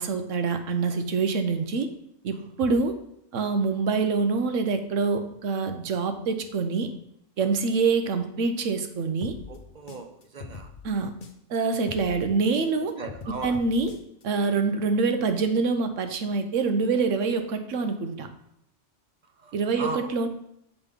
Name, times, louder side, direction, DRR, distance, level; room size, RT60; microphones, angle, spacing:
voice 1, 0.0-1.9 2.2-3.0 3.3-6.9 7.4-9.4 10.8-11.1 11.5-12.9 13.4-13.9 14.2-18.3 19.5-20.3, right 4 dB, 70° right, 8 dB, 1.1 m, -25 dB
sound 1, 9.2-11.6 11.9-14.2, left 4 dB, 45° left, 0.8 m, -43 dB
voice 2, 9.5-10.7 13.0-13.5 19.4-20.1, right 3 dB, 45° right, 6 dB, 0.7 m, -37 dB
7.1 x 4.2 x 5.2 m, 0.75 s
omnidirectional pair, 1.4 m